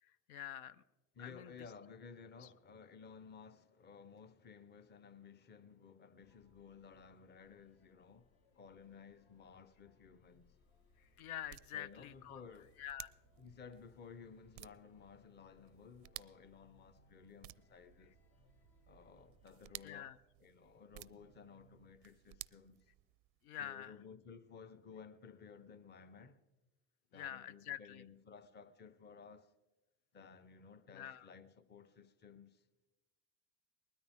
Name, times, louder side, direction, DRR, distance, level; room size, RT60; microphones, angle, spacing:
voice 1, 0.0-0.8 1.2-1.5 2.4-2.5 11.0-12.4 12.8-13.1 19.8-20.2 23.4-23.9 27.1-28.0 30.9-31.3, left 11 dB, 90° left, 0.6 m, -47 dB
voice 2, 1.2-10.5 11.7-12.7 13.4-18.2 18.9-22.9 23.6-26.4 27.1-29.5 30.1-32.6, left 6 dB, 25° left, 0.7 m, -56 dB
sound 1, 6.2-19.6, left 4 dB, 60° left, 2.0 m, -72 dB
sound 2, 10.3-23.5, right 20 dB, 45° right, 0.4 m, -57 dB
20.0 x 13.0 x 3.6 m
supercardioid pair, 105°, 43 cm